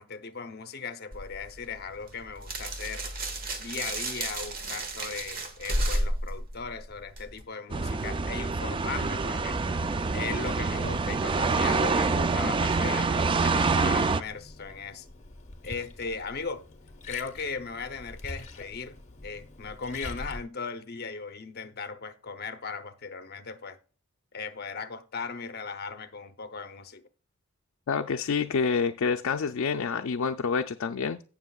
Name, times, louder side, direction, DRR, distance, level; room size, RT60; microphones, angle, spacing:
voice 1, 0.0-3.1 3.6-9.8 10.1-15.1 15.6-16.6 17.1-23.8 24.3-27.1, left 5 dB, 50° left, 0.8 m, -38 dB
sound 1, 1.1-7.4, right 1 dB, 45° right, 1.5 m, -33 dB
sound 2, 7.7-14.2, right 4 dB, 25° right, 0.3 m, -26 dB
Liquid, 14.3-20.4, left 2 dB, 35° left, 1.1 m, -44 dB
voice 2, 27.9-31.2, left 5 dB, 75° left, 0.4 m, -28 dB
17.5 x 6.0 x 2.3 m
head